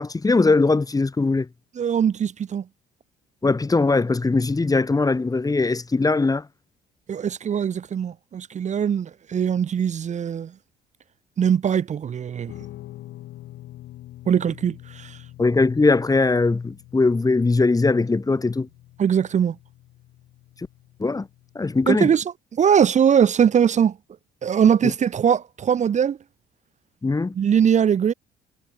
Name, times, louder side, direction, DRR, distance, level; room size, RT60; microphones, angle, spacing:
voice 1, 0.0-1.5 3.4-6.4 15.4-18.7 21.0-21.3 21.5-22.1 27.0-27.3, left 3 dB, 20° left, 1.3 m, -20 dB
voice 2, 1.7-2.6 7.1-10.5 11.4-12.5 14.3-15.2 19.0-19.6 21.9-24.0 24.4-26.2 27.3-28.1, right 8 dB, 40° right, 0.8 m, -21 dB
Guitar, 12.5-21.8, left 15 dB, 70° left, 5.1 m, -45 dB
hypercardioid pair, 60°, 18 cm